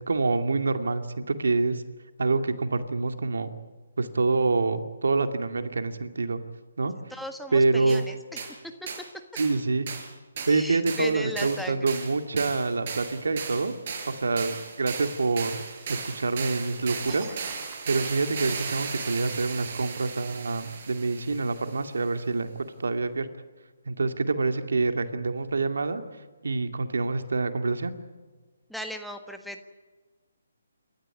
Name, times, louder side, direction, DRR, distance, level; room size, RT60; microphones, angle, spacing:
voice 1, 0.0-1.8 2.2-3.5 4.0-6.4 6.8-6.9 7.5-8.0 9.3-9.9 10.5-13.7 14.1-15.6 15.9-17.3 17.9-22.5 22.8-23.3 23.9-26.0 26.4-27.9, right 3 dB, 75° right, 8 dB, 2.3 m, -26 dB
voice 2, 7.1-8.1 8.8-8.9 10.4-11.9 28.7-29.7, equal, ahead, 5 dB, 1.5 m, -36 dB
sound 1, 7.9-8.0 8.4-8.5 8.9-9.1 9.4-9.6 9.9-10.1 10.4-21.9, right 5 dB, 45° right, 4.9 m, -37 dB
sound 2, 15.5-16.6 17.1-18.9, right 3 dB, 20° right, 7.1 m, -47 dB
29.0 x 13.5 x 9.6 m, 1.3 s
figure-of-eight pair, 145°, 0 cm